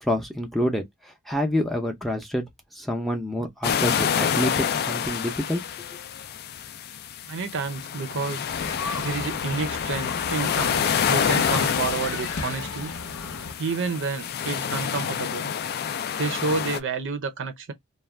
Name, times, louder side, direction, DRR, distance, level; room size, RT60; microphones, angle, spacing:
voice 1, 0.0-0.8 1.3-2.4 2.8-5.6, equal, ahead, 0.6 m, -27 dB
sound 1, 3.6-16.8, left 8 dB, 45° left, 0.3 m, -28 dB
voice 2, 7.3-8.5 9.0-12.9 13.6-15.5 16.2-17.7, right 4 dB, 60° right, 0.6 m, -29 dB
sound 2, 8.5-13.5, left 4 dB, 65° left, 0.7 m, -34 dB
2.4 x 2.2 x 3.2 m
head